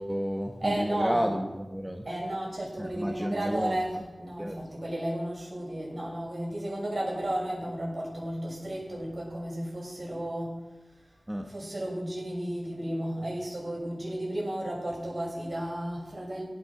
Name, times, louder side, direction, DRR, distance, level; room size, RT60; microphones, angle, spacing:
voice 1, 0.0-2.0 2.8-3.8 4.4-4.6 11.3-11.5, equal, 10° right, 3 dB, 1.1 m, -31 dB
voice 2, 0.6-1.2 2.0-10.6 11.5-16.4, right 1 dB, 55° right, -3 dB, 6.8 m, -33 dB
17.0 x 9.8 x 6.1 m, 1.1 s
wide cardioid pair, 70°, 0 cm